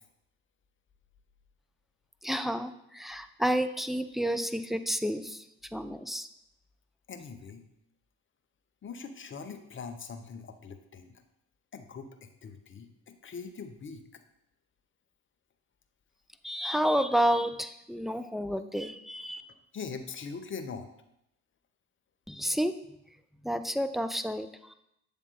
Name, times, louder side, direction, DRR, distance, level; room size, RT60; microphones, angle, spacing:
voice 1, 2.2-5.4 5.7-6.3 16.4-19.4 22.3-22.7 23.4-24.7, equal, ahead, 10 dB, 0.3 m, -30 dB
voice 2, 7.1-7.6 8.8-11.1 11.7-14.0 19.7-20.9, left 5 dB, 35° left, 8 dB, 0.8 m, -42 dB
7.2 x 3.4 x 4.2 m, 0.79 s
hypercardioid pair, 50°, 34 cm